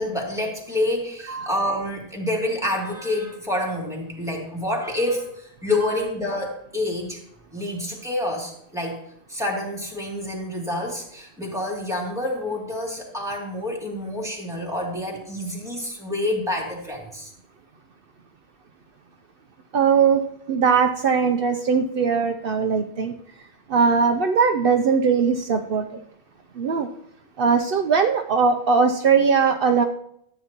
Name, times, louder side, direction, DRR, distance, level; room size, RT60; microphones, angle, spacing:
voice 1, 0.0-7.2 7.5-9.0 9.3-17.3, left 1 dB, 5° right, -3 dB, 2.6 m, -28 dB
voice 2, 19.7-20.2 20.5-23.1 23.7-26.0 26.6-26.9 27.4-29.8, right 5 dB, 65° right, 5 dB, 0.8 m, -20 dB
13.5 x 8.7 x 2.9 m, 0.74 s
omnidirectional pair, 1.1 m